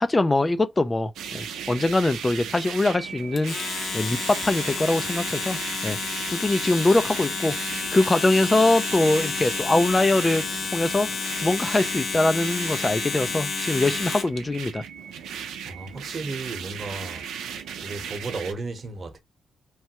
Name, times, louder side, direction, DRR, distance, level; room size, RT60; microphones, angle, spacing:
voice 1, 0.0-3.5 3.9-5.6 5.8-6.0 6.3-10.4 10.7-11.1 11.4-14.8, left 2 dB, 25° left, 0.4 m, -23 dB
sound 1, 1.2-18.5, right 8 dB, 90° right, 0.5 m, -37 dB
Domestic sounds home sounds, 3.4-14.4, left 5 dB, 60° left, 0.7 m, -30 dB
voice 2, 15.6-17.3 17.8-19.2, right 3 dB, 45° right, 1.0 m, -34 dB
3.1 x 2.2 x 2.9 m
cardioid pair, 75°, 0 cm